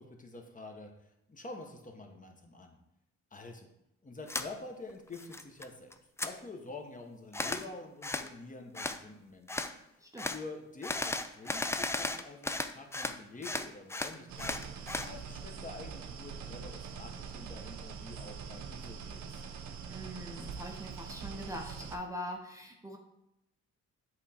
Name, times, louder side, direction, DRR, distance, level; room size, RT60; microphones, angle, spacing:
voice 1, 0.0-2.8 3.3-3.7 4.0-6.0 6.2-9.8 10.2-19.4, left 3 dB, 25° left, 2 dB, 1.2 m, -47 dB
sound 1, 4.3-4.5 4.9-5.7 5.9-6.3 7.3-7.6 8.0-8.3 8.7-9.0 9.5-9.7 10.2-10.4 10.8-13.2 13.4-15.1, left 2 dB, 10° left, 0.4 m, -35 dB
sound 2, 14.3-22.0, right 6 dB, 70° right, 0.7 m, -43 dB
voice 2, 19.8-23.0, equal, 10° right, 1 dB, 0.8 m, -42 dB
7.9 x 3.7 x 4.3 m, 0.86 s
cardioid pair, 90°, 30 cm